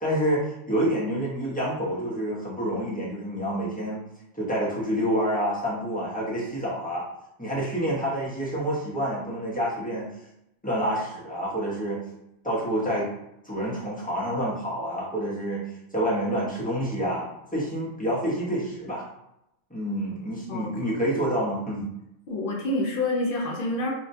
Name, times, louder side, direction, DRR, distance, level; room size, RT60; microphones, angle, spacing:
voice 1, 0.0-4.0 4.3-7.1 7.4-10.1 10.6-12.0 12.4-13.1 13.4-19.1 19.7-21.9, equal, 10° left, -7 dB, 0.5 m, -28 dB
voice 2, 20.5-20.8 22.3-23.9, left 2 dB, 60° left, -2 dB, 0.6 m, -27 dB
2.7 x 2.1 x 2.6 m, 0.84 s
omnidirectional pair, 1.2 m